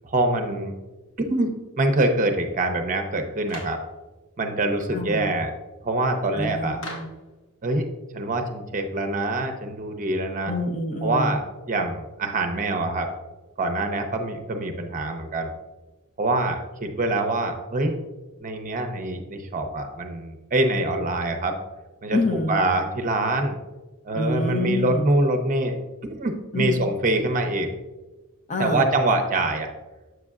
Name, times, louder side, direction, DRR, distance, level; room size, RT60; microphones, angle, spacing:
voice 1, 0.0-0.7 1.3-3.8 4.4-5.5 5.8-6.8 7.6-7.9 8.1-10.5 11.0-11.4 11.7-13.1 13.6-15.5 16.2-18.0 18.4-21.6 22.0-22.2 22.5-23.6 24.0-25.8 26.1-27.7 28.6-29.7, right 2 dB, 35° right, 5 dB, 0.6 m, -24 dB
Clapping, 3.5-3.9 6.8-7.2, left 1 dB, 60° left, 1.4 m, -38 dB
voice 2, 4.9-5.4 6.3-7.1 10.5-11.4 22.1-22.6 24.1-25.0 26.5-26.8 28.5-28.9, left 2 dB, 35° left, 4 dB, 0.6 m, -27 dB
7.8 x 6.4 x 2.4 m, 1.2 s
head